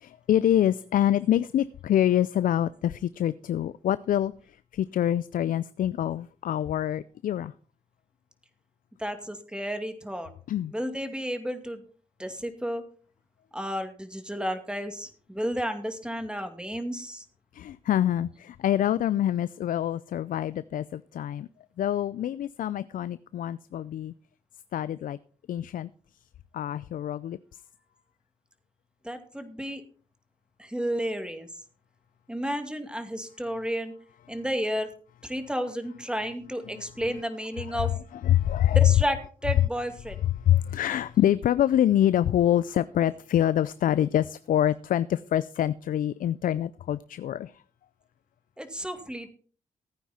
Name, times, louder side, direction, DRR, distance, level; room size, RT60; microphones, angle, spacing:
voice 1, 0.0-4.3 4.7-7.5 10.5-10.7 17.5-21.5 21.8-24.1 24.7-25.2 25.5-25.9 26.5-27.4 37.7-37.9 38.2-38.8 40.5-47.5, left 11 dB, 70° left, 0.4 m, -25 dB
voice 2, 9.0-10.3 10.6-11.8 12.2-12.8 13.5-17.3 29.0-29.8 30.6-31.5 32.3-33.9 34.3-34.9 35.2-37.9 38.7-40.2 48.6-49.3, equal, 5° right, 2.3 m, -32 dB
15.0 x 9.2 x 4.3 m
supercardioid pair, 55°, 14 cm